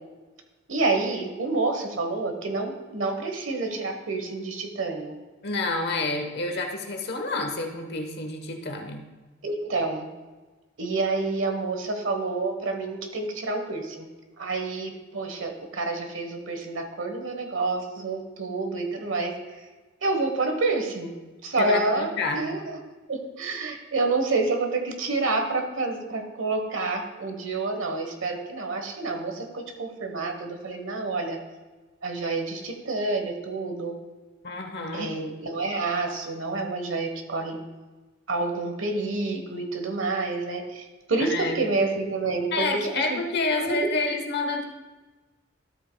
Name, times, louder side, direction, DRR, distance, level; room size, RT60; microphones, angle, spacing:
voice 1, 0.7-5.1 9.4-10.1 10.8-14.1 14.4-19.7 20.0-21.1 21.4-22.8 23.1-31.4 32.0-34.0 34.9-37.6 38.3-42.7 43.1-43.2 43.6-43.9, right 3 dB, 70° right, 4 dB, 1.2 m, -28 dB
voice 2, 5.4-9.1 21.6-22.4 34.4-35.1 41.2-41.6 42.5-44.6, left 3 dB, 55° left, 4 dB, 1.1 m, -28 dB
12.5 x 8.2 x 2.3 m, 1.2 s
head